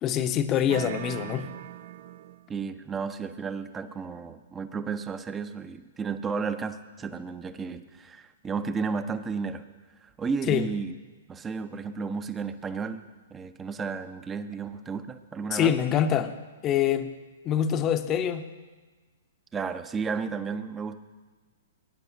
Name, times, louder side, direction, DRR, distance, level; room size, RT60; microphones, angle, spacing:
voice 1, 0.0-1.5 10.5-10.7 15.5-16.4 16.6-17.1 17.4-18.5, left 9 dB, 30° left, 9 dB, 0.8 m, -25 dB
sound 1, 0.7-2.6, right 13 dB, 55° right, 0.3 m, -40 dB
voice 2, 2.5-9.7 10.0-11.0 11.3-13.1 13.3-15.9 19.5-21.0, right 5 dB, 15° right, 11 dB, 0.7 m, -33 dB
21.0 x 10.0 x 2.8 m, 1.3 s
hypercardioid pair, 115°, 0 cm